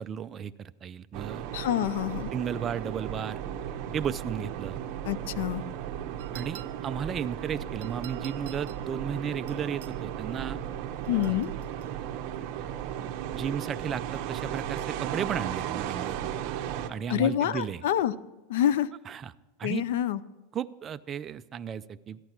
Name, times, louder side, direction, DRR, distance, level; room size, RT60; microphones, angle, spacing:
voice 1, 0.0-1.4 2.3-3.4 3.9-4.8 6.3-10.6 11.1-11.4 11.9-12.1 12.5-16.3 16.9-17.8 19.1-19.3 19.6-19.8 20.5-22.2, right 7 dB, 25° right, 11 dB, 0.4 m, -34 dB
sound 1, 1.1-16.9, right 10 dB, 50° right, 1.1 m, -35 dB
voice 2, 1.5-2.3 5.0-5.6 11.1-11.5 17.1-18.1 18.5-18.9 19.6-20.2, left 11 dB, 75° left, 18 dB, 0.5 m, -27 dB
sound 2, 6.2-7.0 7.8-8.9 9.5-10.0 11.0-12.0, right 13 dB, 85° right, 0.4 m, -49 dB
14.0 x 11.5 x 4.5 m, 1.1 s
supercardioid pair, 145°, 0 cm